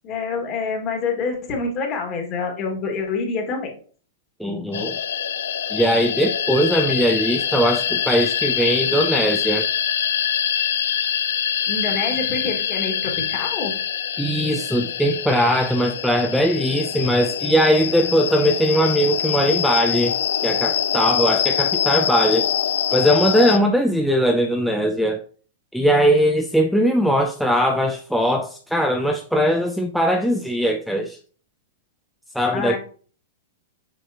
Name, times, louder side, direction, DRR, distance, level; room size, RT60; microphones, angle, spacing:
voice 1, 0.0-3.7 11.7-13.7 32.5-32.8, left 4 dB, 30° left, 2 dB, 2.0 m, -26 dB
voice 2, 4.4-5.0 5.7-9.7 14.2-20.2 20.4-22.5 22.9-25.2 25.7-31.2 32.3-32.8, equal, ahead, 2 dB, 0.5 m, -20 dB
sound 1, 4.7-23.6, left 9 dB, 80° left, 0.5 m, -24 dB
6.3 x 6.0 x 2.9 m, 0.42 s
hypercardioid pair, 145°, 0 cm